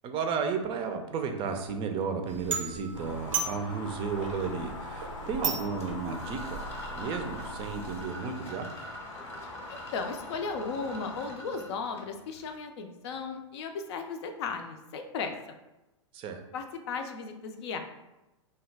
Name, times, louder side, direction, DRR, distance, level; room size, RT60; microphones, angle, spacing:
voice 1, 0.0-6.6 6.9-8.7 16.1-16.4, right 5 dB, 30° right, 5 dB, 0.5 m, -33 dB
sound 1, 2.3-8.0, right 5 dB, 90° right, 0.6 m, -37 dB
sound 2, 2.9-11.3, left 2 dB, 90° left, 0.8 m, -43 dB
sound 3, 5.8-12.6, equal, 15° left, 0.7 m, -46 dB
voice 2, 9.7-15.3 16.5-17.8, left 5 dB, 60° left, 6 dB, 0.5 m, -36 dB
2.9 x 2.3 x 3.3 m, 0.97 s
hypercardioid pair, 110°, 16 cm